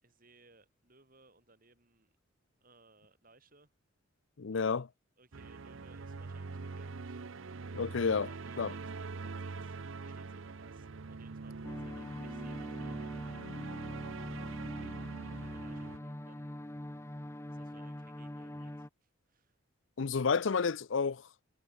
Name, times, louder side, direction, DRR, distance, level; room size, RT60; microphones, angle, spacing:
voice 1, 0.0-2.2 2.6-3.7 4.5-4.8 5.2-7.2 8.1-13.5 14.2-16.6 17.5-19.6, right 3 dB, 45° right, 4.6 m, -64 dB
voice 2, 4.4-4.9 7.7-8.3 8.6-8.7 20.0-21.3, left 5 dB, 65° left, 0.6 m, -30 dB
sound 1, 5.3-16.0, right 4 dB, 70° right, 0.7 m, -44 dB
sound 2, 11.6-18.9, left 1 dB, 15° left, 0.8 m, -43 dB
head